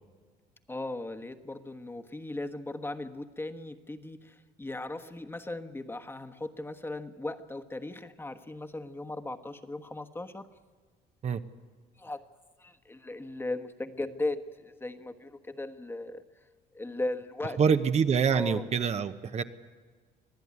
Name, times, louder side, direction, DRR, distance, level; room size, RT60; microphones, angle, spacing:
voice 1, 0.7-10.5 12.0-12.3 12.6-16.2 16.7-17.9 18.3-18.6, left 2 dB, 15° left, 8 dB, 1.3 m, -37 dB
voice 2, 17.6-19.4, right 6 dB, 40° right, 9 dB, 1.0 m, -25 dB
25.0 x 16.0 x 9.7 m, 1.5 s
cardioid pair, 110°, 17 cm